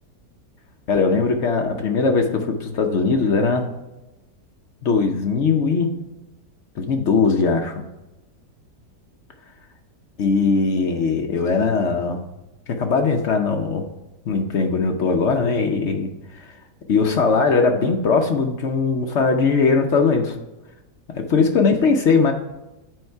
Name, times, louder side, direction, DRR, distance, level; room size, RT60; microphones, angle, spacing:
voice 1, 0.9-3.7 4.8-5.9 6.8-7.8 10.2-12.2 12.7-13.8 14.3-16.1 16.4-16.5 16.9-20.4 21.3-22.3, left 4 dB, 60° left, 4 dB, 0.7 m, -20 dB
7.8 x 4.6 x 5.6 m, 1.0 s
omnidirectional pair, 1.9 m